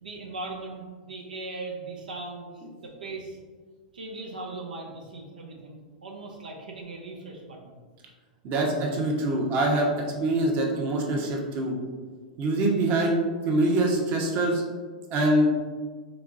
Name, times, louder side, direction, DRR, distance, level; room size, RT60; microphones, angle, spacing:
voice 1, 0.0-3.4 3.9-7.8, right 3 dB, 90° right, -1 dB, 0.6 m, -39 dB
voice 2, 8.4-9.9 10.2-11.7 12.4-14.6 15.1-15.5, right 1 dB, 40° right, 0 dB, 1.0 m, -24 dB
4.4 x 3.8 x 2.6 m, 1.5 s
hypercardioid pair, 110°, 4 cm